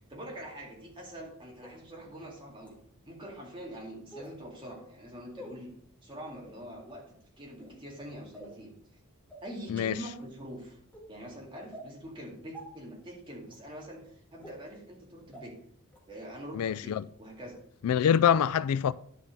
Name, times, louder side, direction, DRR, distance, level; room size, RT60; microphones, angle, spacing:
voice 1, 0.1-2.8 3.1-5.7 6.0-7.0 7.4-8.7 9.4-10.8 11.1-14.0 14.3-15.6 16.1-17.6 17.9-18.2, right 1 dB, 25° right, 2.2 m, -44 dB
sound 1, 1.6-1.7 2.6-2.7 4.1-4.3 5.3-5.5 6.3-6.5 7.5-7.8 8.3-8.6 9.3-9.4 10.0-10.2 10.9-11.0 11.7-11.8 12.5-12.6 13.5-13.6 14.4-14.5 15.3-15.4 15.9-16.0, right 1 dB, 5° left, 2.1 m, -46 dB
voice 2, 16.6-17.0 17.8-18.9, left 8 dB, 85° left, 0.3 m, -25 dB
11.0 x 5.7 x 3.8 m
head